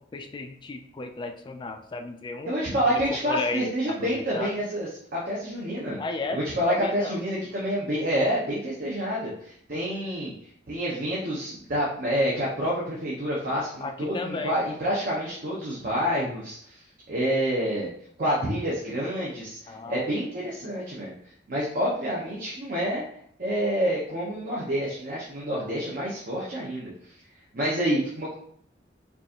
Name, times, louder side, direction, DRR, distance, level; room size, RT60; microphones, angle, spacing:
voice 1, 0.1-2.5 2.8-3.0 3.3-3.7 4.0-4.5 6.0-6.4 6.7-7.2 13.8-14.5 19.7-20.0, left 3 dB, 25° left, 5 dB, 0.3 m, -33 dB
voice 2, 2.5-6.0 6.3-10.3 10.7-16.8 17.1-17.9 18.2-21.1 21.5-23.0 23.4-26.9 27.5-28.3, equal, 50° right, -6 dB, 0.9 m, -28 dB
4.6 x 2.5 x 2.8 m, 0.65 s
head